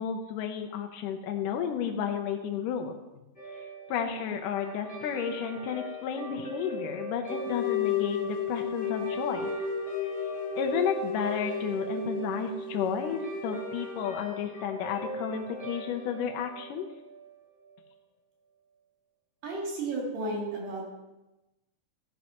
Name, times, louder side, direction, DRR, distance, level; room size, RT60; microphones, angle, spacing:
voice 1, 0.0-3.0 3.9-9.5 10.6-16.9, left 7 dB, 75° left, 4 dB, 2.2 m, -32 dB
Guitar, 3.3-17.9, right 1 dB, 20° left, 2.2 m, -41 dB
sound 1, 7.3-14.0, left 5 dB, 45° left, 1.7 m, -33 dB
voice 2, 19.4-20.8, right 2 dB, 70° right, -4 dB, 4.6 m, -33 dB
14.5 x 10.5 x 3.0 m, 1.0 s
omnidirectional pair, 4.1 m